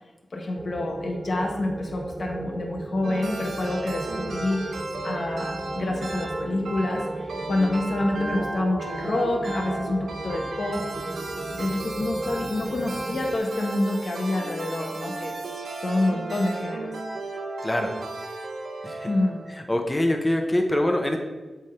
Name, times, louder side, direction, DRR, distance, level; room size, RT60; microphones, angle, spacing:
voice 1, 0.3-4.8 5.0-7.0 7.5-10.8 11.6-15.3 15.8-16.9 19.1-19.4, left 2 dB, 60° left, 1 dB, 1.0 m, -27 dB
sound 1, 0.6-13.4, right 2 dB, 40° right, 0.5 m, -36 dB
sound 2, 3.0-19.6, right 2 dB, 85° right, 0.8 m, -34 dB
voice 2, 19.7-21.2, left 1 dB, 20° left, 3 dB, 0.9 m, -24 dB
7.8 x 3.5 x 4.4 m, 1.2 s
wide cardioid pair, 75°, 0 cm